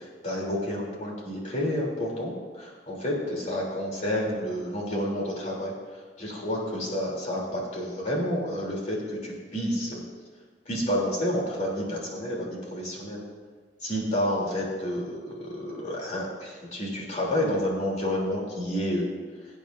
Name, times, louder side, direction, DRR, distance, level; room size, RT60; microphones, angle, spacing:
voice 1, 0.2-10.0 10.6-13.2 13.8-19.1, equal, 45° left, -3 dB, 3.3 m, -30 dB
22.5 x 9.1 x 2.7 m, 1.5 s
head